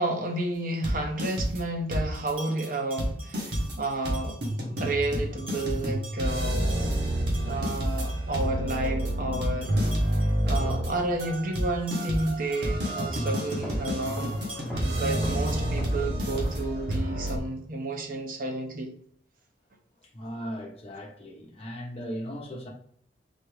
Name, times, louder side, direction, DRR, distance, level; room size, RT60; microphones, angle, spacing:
voice 1, 0.0-4.4 4.8-6.7 7.5-9.7 10.4-14.4 14.8-18.9, right 2 dB, 50° right, 0.9 m, -31 dB
sound 1, 0.8-1.6 1.9-2.3 2.6-2.7 3.0-17.4, right 1 dB, 65° right, 1.4 m, -29 dB
sound 2, 2.1-15.8, right 1 dB, 30° right, 1.4 m, -48 dB
sound 3, 13.6-17.3, equal, 5° left, 1.1 m, -42 dB
voice 2, 20.1-22.7, equal, 35° left, 1.1 m, -37 dB
4.2 x 3.4 x 3.4 m
head